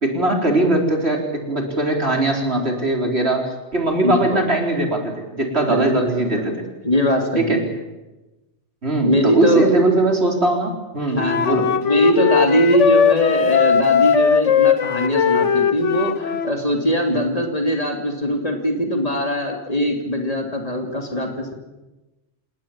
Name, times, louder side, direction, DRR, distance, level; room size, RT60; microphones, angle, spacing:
voice 1, 0.0-3.5 3.7-6.6 7.4-7.6 8.8-11.7 17.1-17.2, right 2 dB, 60° right, 1 dB, 4.5 m, -20 dB
voice 2, 4.0-4.5 5.7-6.5 6.8-7.7 9.0-9.7 11.2-21.5, equal, 30° left, 2 dB, 3.0 m, -21 dB
Wind instrument woodwind instrument, 11.2-16.5, left 7 dB, 75° left, 1.4 m, -18 dB
28.5 x 18.5 x 7.4 m, 1.1 s
omnidirectional pair, 1.2 m